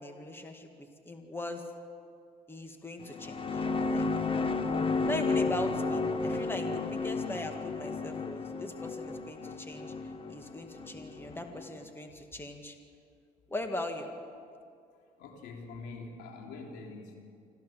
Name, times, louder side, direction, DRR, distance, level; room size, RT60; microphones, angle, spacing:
voice 1, 0.0-1.6 2.5-3.7 3.9-4.1 5.0-9.9 10.3-12.8 13.5-14.1, left 2 dB, 15° left, 5 dB, 1.9 m, -40 dB
sound 1, 3.0-11.7, left 3 dB, 30° left, 1.4 m, -32 dB
voice 2, 15.2-17.2, left 3 dB, 90° left, 1 dB, 3.5 m, -44 dB
26.0 x 14.5 x 7.5 m, 2.3 s
cardioid pair, 110°, 17 cm